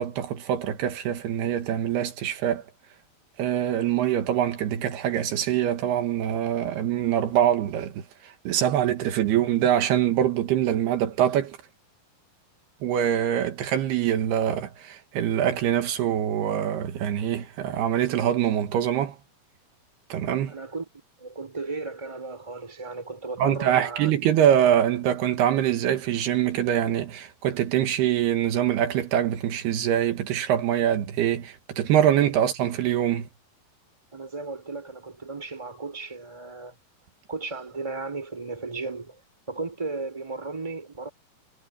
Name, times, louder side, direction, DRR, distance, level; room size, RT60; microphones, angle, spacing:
voice 1, 0.0-2.6 3.4-11.6 12.8-19.2 20.1-20.5 23.4-33.3, right 10 dB, 80° right, 3.5 m, -24 dB
voice 2, 20.5-20.9 21.2-24.1 34.1-36.7 37.3-39.2 39.5-41.1, right 3 dB, 5° right, 4.2 m, -35 dB
omnidirectional pair, 4.6 m